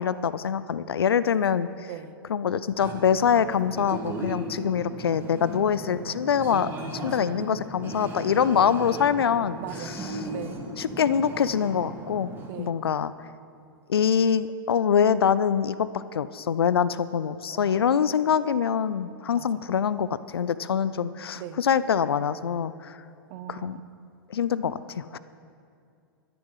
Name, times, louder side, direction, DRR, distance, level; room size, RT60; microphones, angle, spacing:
voice 1, 0.0-1.9 2.3-10.1 10.8-12.3 12.6-13.1 13.9-23.0 23.5-23.8 24.3-25.2, left 7 dB, 80° left, 15 dB, 0.5 m, -24 dB
sound 1, 2.8-12.5, right 1 dB, 15° right, 2.1 m, -37 dB
voice 2, 7.1-7.6 9.6-10.0 10.3-10.6 12.4-12.7 17.5-17.9 19.4-19.6 21.3-21.6 23.3-23.9, right 13 dB, 45° right, 12 dB, 0.7 m, -40 dB
12.5 x 10.0 x 5.6 m, 2.4 s
figure-of-eight pair, 100°, 13 cm